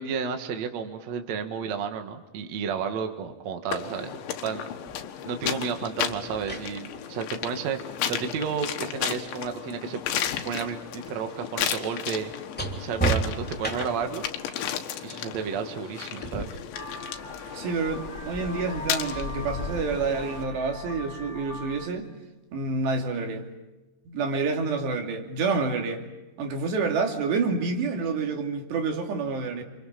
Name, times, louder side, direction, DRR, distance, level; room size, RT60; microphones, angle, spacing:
voice 1, 0.0-4.2 4.4-4.6 5.2-7.8 8.1-10.0 10.4-12.3 12.7-14.3 15.0-16.6, right 6 dB, 50° right, 6 dB, 2.3 m, -32 dB
sound 1, 3.7-20.4, left 10 dB, 90° left, 3.8 m, -34 dB
sound 2, 4.9-5.0 6.1-10.1 10.4-14.2 16.2-16.4, right 3 dB, 5° left, 2.4 m, -34 dB
Vehicle horn car horn honking, 16.7-21.9, left 2 dB, 20° left, 2.0 m, -38 dB
voice 2, 17.5-22.1 22.5-23.5 24.1-26.0 26.4-29.6, right 4 dB, 70° right, 3 dB, 4.8 m, -28 dB
29.5 x 27.0 x 5.9 m, 1.1 s
omnidirectional pair, 5.1 m